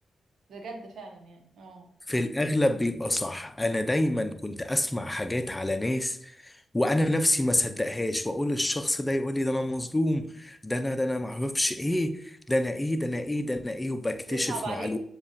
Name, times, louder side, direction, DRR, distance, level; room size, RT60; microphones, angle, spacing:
voice 1, 0.5-1.9 14.3-15.0, right 3 dB, 75° right, 3 dB, 0.9 m, -39 dB
voice 2, 2.1-15.0, left 1 dB, 20° left, 8 dB, 0.6 m, -28 dB
7.0 x 2.4 x 2.7 m, 0.67 s
supercardioid pair, 40°, 0 cm